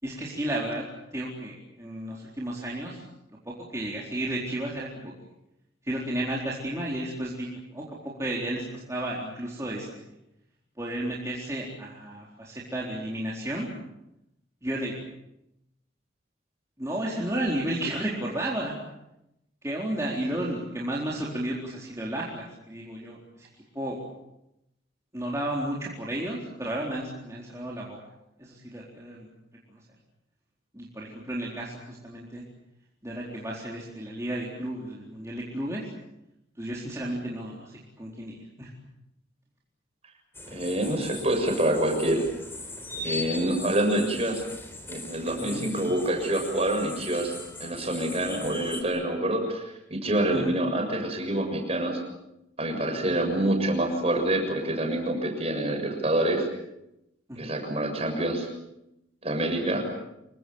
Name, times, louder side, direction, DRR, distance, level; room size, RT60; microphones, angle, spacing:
voice 1, 0.0-0.8 1.1-3.0 3.5-5.1 5.8-10.1 10.8-13.7 14.6-14.9 16.8-18.7 19.6-23.5 23.7-24.0 25.1-28.0 28.4-29.3 29.7-29.8 30.7-32.4 33.0-35.9 36.6-38.7 45.4-45.6 50.3-50.6 52.9-53.2 57.3-57.6, right 1 dB, 15° right, -5 dB, 4.2 m, -33 dB
sound 1, 40.3-48.8, left 2 dB, 10° left, 3.9 m, -40 dB
voice 2, 40.5-42.3 43.0-44.4 44.9-49.6 49.9-52.0 52.6-56.4 57.4-58.5 59.2-59.8, right 1 dB, 30° right, 4 dB, 6.8 m, -26 dB
27.5 x 24.0 x 7.2 m, 0.87 s
head